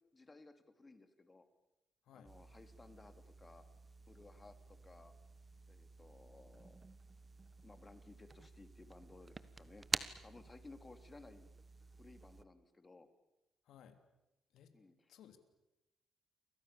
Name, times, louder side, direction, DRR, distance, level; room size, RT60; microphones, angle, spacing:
voice 1, 0.1-1.4 2.1-3.6 4.1-5.1 5.7-6.8 7.6-9.8 10.2-11.5 12.0-13.1 14.7-15.1, left 3 dB, 25° left, 9 dB, 3.2 m, -59 dB
sound 1, 2.3-12.4, right 3 dB, 30° right, 1.5 m, -49 dB
voice 2, 13.6-14.0 14.5-14.7 15.1-15.4, left 9 dB, 80° left, 8 dB, 3.3 m, -59 dB
29.5 x 24.0 x 7.1 m, 0.95 s
cardioid pair, 90°, 0 cm